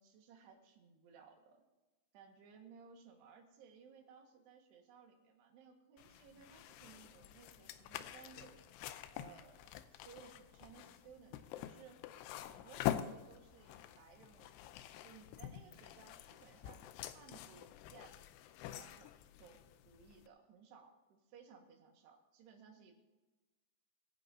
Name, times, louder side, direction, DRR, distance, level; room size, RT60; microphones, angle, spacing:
voice 1, 0.0-1.6 2.1-8.6 9.1-12.0 12.5-14.8 15.0-18.2 18.6-19.1 19.4-19.6 19.9-22.9, right 6 dB, 80° right, 3 dB, 3.8 m, -60 dB
sound 1, 6.0-20.3, left 12 dB, 85° left, 2.7 m, -46 dB
24.0 x 10.0 x 2.7 m, 1.1 s
omnidirectional pair, 4.7 m